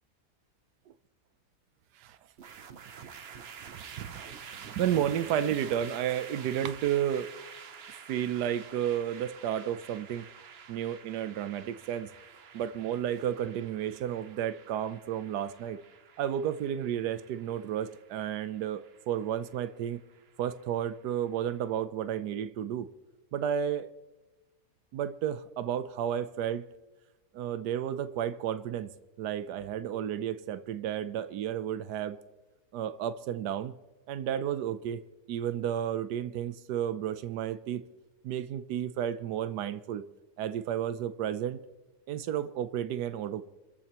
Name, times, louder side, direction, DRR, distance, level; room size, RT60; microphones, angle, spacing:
sound 1, 2.4-21.6, right 7 dB, 50° right, 0.9 m, -49 dB
voice 1, 3.7-7.3 8.1-10.3 10.7-12.1 12.5-15.8 16.2-20.0 20.4-22.9 23.3-23.9 24.9-26.7 27.3-28.9 29.2-32.2 32.7-33.7 34.1-35.0 35.3-37.8 38.2-40.0 40.4-41.6 42.1-43.5, right 10 dB, 85° right, 1.3 m, -32 dB
29.0 x 14.0 x 3.0 m
omnidirectional pair, 1.7 m